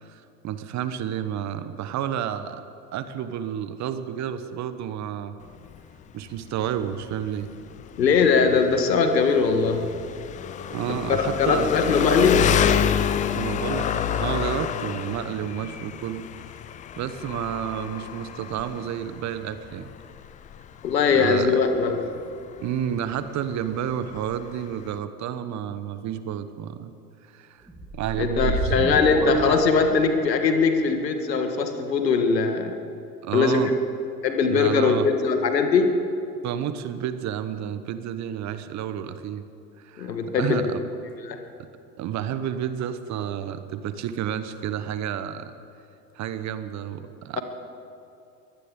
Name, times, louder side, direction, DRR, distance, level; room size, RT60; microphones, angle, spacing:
voice 1, 0.0-2.6 2.9-5.4 6.1-7.5 10.7-11.7 13.3-16.2 17.0-19.9 21.1-21.6 22.6-26.9 27.2-27.7 27.9-28.7 33.2-33.7 34.5-35.1 36.4-39.4 39.8-40.8 42.0-45.5 46.1-47.4, right 9 dB, 35° right, 11 dB, 1.0 m, -30 dB
Engine, 5.4-25.0, left 8 dB, 15° left, 0.4 m, -29 dB
voice 2, 8.0-9.9 10.9-12.6 20.8-22.0 28.2-32.8 33.3-33.7 34.2-35.9 40.0-40.7 41.2-41.4, left 5 dB, 80° left, 6 dB, 1.8 m, -21 dB
sound 1, 27.7-30.4, right 1 dB, 5° right, 2.4 m, -29 dB
22.5 x 17.0 x 3.8 m, 2.8 s
figure-of-eight pair, 85°, 49 cm